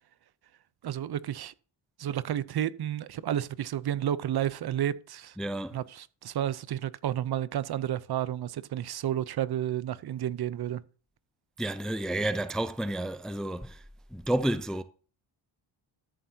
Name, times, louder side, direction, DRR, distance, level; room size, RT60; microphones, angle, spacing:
voice 1, 0.8-1.5 2.0-5.3 5.7-10.8, right 11 dB, 55° right, 0.7 m, -31 dB
voice 2, 5.4-5.8 11.6-13.8 14.1-14.8, right 1 dB, ahead, 0.4 m, -30 dB
13.0 x 7.5 x 2.8 m
cardioid pair, 115°, 46 cm